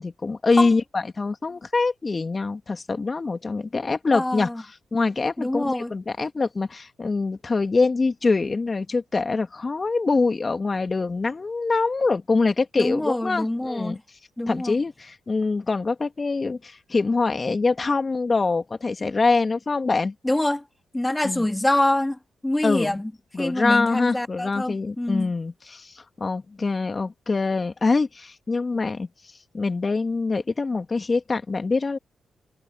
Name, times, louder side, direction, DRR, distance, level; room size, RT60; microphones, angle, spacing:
voice 1, 0.0-14.0 14.5-20.1 21.2-21.4 22.6-23.0 23.3-29.1 29.5-32.0, left 3 dB, 40° left, 2.6 m, -24 dB
voice 2, 4.1-4.6 5.4-5.9 12.8-14.0 14.4-14.8 20.2-20.6 20.9-22.2 22.4-23.1 23.4-25.3, left 1 dB, 15° left, 2.5 m, -25 dB
hypercardioid pair, 40°, 0 cm